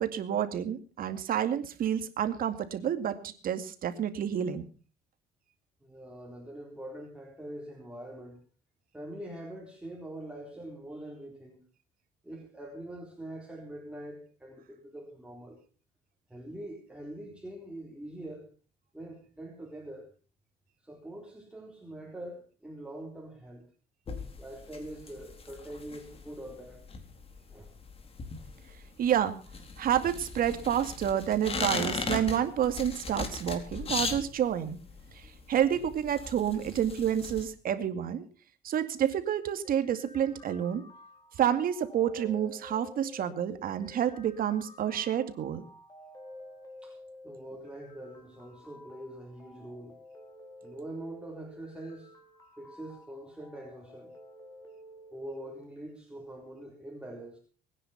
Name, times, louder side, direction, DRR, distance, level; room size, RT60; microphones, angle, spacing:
voice 1, 0.0-4.6 29.0-29.4 29.8-34.8 35.1-38.2 38.6-40.8 41.4-45.6, right 9 dB, 60° right, 10 dB, 2.3 m, -29 dB
voice 2, 5.8-8.4 8.9-11.6 12.2-15.6 16.3-18.5 18.9-20.1 20.8-23.7 24.4-26.9 27.5-27.7 35.2-35.4 46.8-47.0 47.2-50.0 50.6-52.1 52.6-54.1 55.1-57.4, right 1 dB, 5° right, 0 dB, 3.9 m, -44 dB
sound 1, 24.1-37.5, left 4 dB, 35° left, 3.9 m, -38 dB
sound 2, 39.6-55.6, left 1 dB, 20° left, 4.7 m, -52 dB
22.0 x 10.0 x 5.8 m, 0.39 s
cardioid pair, 110°, 17 cm